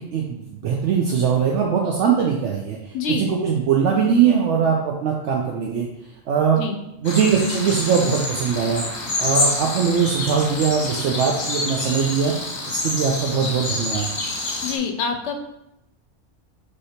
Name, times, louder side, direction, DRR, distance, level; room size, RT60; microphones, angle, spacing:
voice 1, 0.0-2.9 3.2-5.9 6.3-6.6 7.0-8.8 9.2-12.3 12.7-14.1, right 6 dB, 70° right, -1 dB, 0.9 m, -21 dB
voice 2, 2.9-3.3 6.5-6.8 14.6-15.4, left 5 dB, 70° left, 6 dB, 0.8 m, -26 dB
sound 1, 7.0-14.8, left 2 dB, 40° left, 0.9 m, -27 dB
6.4 x 2.8 x 2.8 m, 0.86 s
omnidirectional pair, 1.3 m